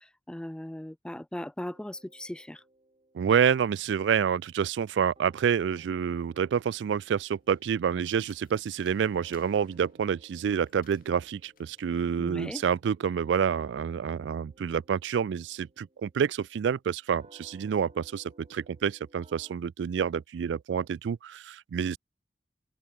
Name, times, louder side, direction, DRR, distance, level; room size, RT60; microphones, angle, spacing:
voice 1, 0.0-2.6 12.2-12.6, left 1 dB, 5° left, 0.3 m, -38 dB
sound 1, 1.6-4.9 5.2-19.6, right 1 dB, 35° right, 2.4 m, -61 dB
voice 2, 3.1-22.0, right 7 dB, 80° right, 0.3 m, -28 dB
sound 2, 7.3-12.9, left 7 dB, 55° left, 6.6 m, -64 dB
open air
head